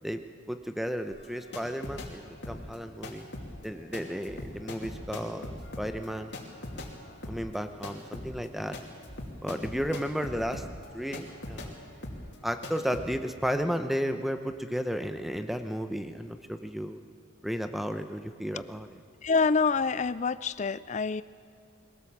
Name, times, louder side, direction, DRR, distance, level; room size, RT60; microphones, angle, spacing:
voice 1, 0.0-3.3 3.6-6.4 7.3-8.8 9.4-10.7 10.9-11.8 12.4-17.0 17.4-19.0, equal, ahead, 8 dB, 0.8 m, -33 dB
sound 1, 1.1-2.1 2.4-11.8 12.0-12.4 12.6-13.1, left 1 dB, 55° left, 2.7 m, -41 dB
voice 2, 19.2-21.2, left 4 dB, 35° left, 16 dB, 0.4 m, -26 dB
23.0 x 17.5 x 7.4 m, 2.3 s
head